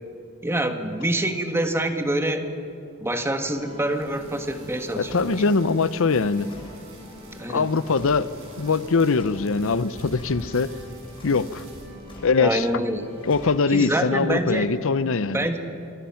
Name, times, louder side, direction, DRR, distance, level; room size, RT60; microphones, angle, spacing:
voice 1, 0.4-2.5 3.0-5.4 7.4-7.7 12.4-13.1 13.7-14.7 15.3-15.6, right 1 dB, 10° right, 6 dB, 1.4 m, -26 dB
sound 1, 3.4-13.6, left 1 dB, 25° right, 7.4 m, -46 dB
sound 2, 3.8-14.8, right 1 dB, 65° right, 6.4 m, -48 dB
voice 2, 5.0-6.5 7.5-8.3 8.6-10.7 11.2-11.6 12.2-12.7 13.2-15.5, left 4 dB, 65° left, 16 dB, 0.7 m, -22 dB
sound 3, 5.0-5.4 6.5-6.9 7.9-8.3 9.2-9.5 10.2-10.5 11.2-11.6 12.1-12.4 13.3-13.9, equal, 25° left, 5.1 m, -45 dB
26.5 x 21.0 x 5.8 m, 2.7 s
head